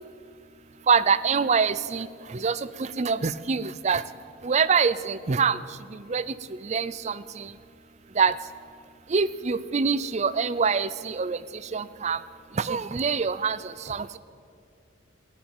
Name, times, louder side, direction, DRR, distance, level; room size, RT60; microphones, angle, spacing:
voice 1, 0.8-4.0 4.4-7.6 8.1-8.4 9.1-12.2 12.5-14.2, right 5 dB, 35° right, 16 dB, 0.4 m, -25 dB
15.5 x 8.9 x 9.0 m, 2.2 s
head